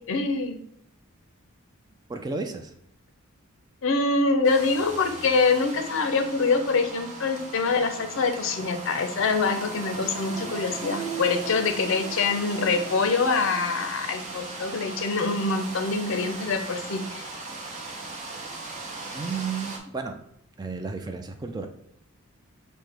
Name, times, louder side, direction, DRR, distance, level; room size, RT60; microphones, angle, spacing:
voice 1, 0.1-0.6 3.8-17.2, left 4 dB, 60° left, 6 dB, 0.5 m, -25 dB
voice 2, 2.1-2.7 19.1-20.2 20.6-21.7, right 4 dB, 20° right, 5 dB, 0.3 m, -32 dB
sound 1, 4.4-19.8, right 3 dB, 35° right, 0.7 m, -37 dB
5.9 x 2.1 x 3.3 m, 0.72 s
head